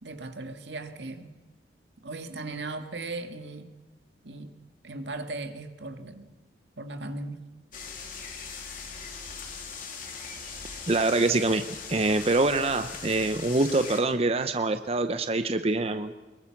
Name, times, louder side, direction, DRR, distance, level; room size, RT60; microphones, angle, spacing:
voice 1, 0.0-1.3 2.0-3.7 4.2-4.5 4.8-6.3 6.8-7.4, right 2 dB, 80° right, 7 dB, 2.0 m, -37 dB
sound 1, 7.7-14.0, left 5 dB, 50° left, 3.1 m, -40 dB
voice 2, 10.9-11.6 11.9-16.1, right 2 dB, 35° right, 9 dB, 0.8 m, -25 dB
24.5 x 22.0 x 6.0 m, 1.2 s
head